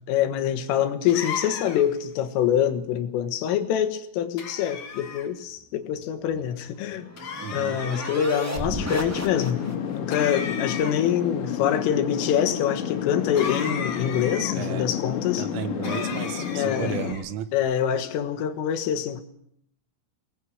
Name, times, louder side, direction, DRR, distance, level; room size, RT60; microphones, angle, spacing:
voice 1, 0.1-7.1 7.5-9.6 9.9-15.5 16.6-17.0 17.5-19.2, left 9 dB, 80° left, 4.0 m, -25 dB
sound 1, 1.1-2.0 4.4-5.3 7.2-8.1 10.1-11.2 13.3-14.5 15.8-17.2, left 6 dB, 45° left, 2.8 m, -35 dB
sound 2, 6.4-10.0, equal, 5° right, 1.6 m, -34 dB
voice 2, 7.4-7.8 14.6-14.9 15.4-17.5, right 9 dB, 75° right, 3.6 m, -33 dB
sound 3, 9.2-17.1, left 9 dB, 65° left, 4.5 m, -30 dB
23.5 x 20.0 x 8.0 m
omnidirectional pair, 5.9 m